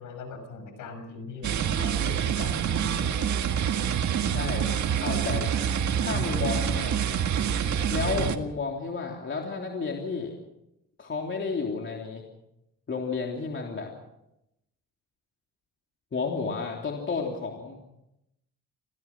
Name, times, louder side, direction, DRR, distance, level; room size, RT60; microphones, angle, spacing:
voice 1, 0.0-3.0, left 4 dB, 85° left, 8 dB, 6.1 m, -40 dB
sound 1, 1.4-8.4, right 8 dB, 70° right, 1.8 m, -26 dB
voice 2, 4.3-4.7 5.0-5.5 6.0-7.0 7.9-10.3 11.0-12.2 12.9-13.9 16.1-17.8, left 4 dB, 40° left, 1 dB, 3.3 m, -31 dB
26.0 x 16.5 x 6.1 m, 0.87 s
cardioid pair, 90°, 30 cm